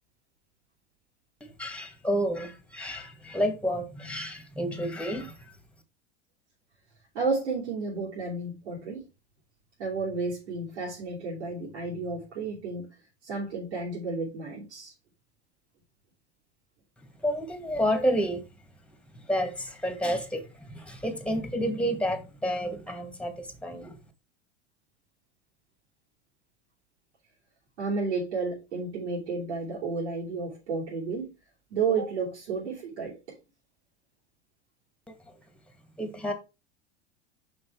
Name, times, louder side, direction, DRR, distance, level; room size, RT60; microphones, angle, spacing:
voice 1, 1.4-5.5 17.2-18.4 19.1-24.0 35.1-35.2 36.0-36.3, equal, 5° left, 2.0 m, -30 dB
voice 2, 7.1-9.1 9.8-12.9 13.2-14.9 27.8-31.3 31.7-33.2, right 4 dB, 80° right, 3.2 m, -31 dB
6.5 x 5.3 x 4.6 m
hypercardioid pair, 95°, 34 cm